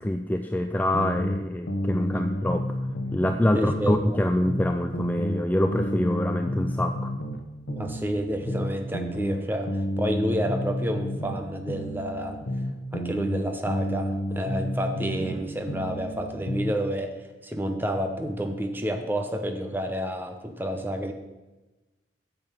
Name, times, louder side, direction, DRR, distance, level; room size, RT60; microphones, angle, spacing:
voice 1, 0.0-7.1, left 1 dB, 10° left, 6 dB, 0.4 m, -25 dB
sound 1, 0.9-3.4 3.7-7.4 7.7-11.4 11.7-15.4 15.7-16.8, equal, 70° left, 1.1 m, -31 dB
voice 2, 3.5-4.0 7.7-12.4 12.9-17.1 17.4-21.1, equal, 10° right, 5 dB, 0.9 m, -29 dB
8.9 x 7.1 x 5.8 m, 1.1 s
head